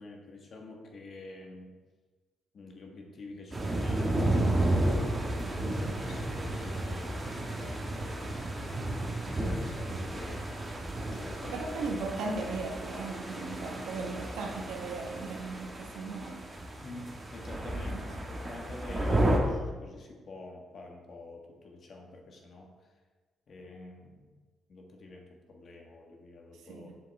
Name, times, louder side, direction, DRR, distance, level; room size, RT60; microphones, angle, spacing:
voice 1, 0.0-1.7 2.5-8.7 9.3-11.6 13.9-14.1 16.8-22.7 23.5-24.3 24.7-26.9, left 2 dB, 50° left, 2 dB, 1.4 m, -47 dB
sound 1, 3.5-19.4, right 1 dB, 20° right, 1.5 m, -32 dB
voice 2, 11.5-16.4 17.9-18.0 26.6-27.0, right 3 dB, 85° right, 1 dB, 1.3 m, -37 dB
7.7 x 6.9 x 3.5 m, 1.4 s
cardioid pair, 90°, 0 cm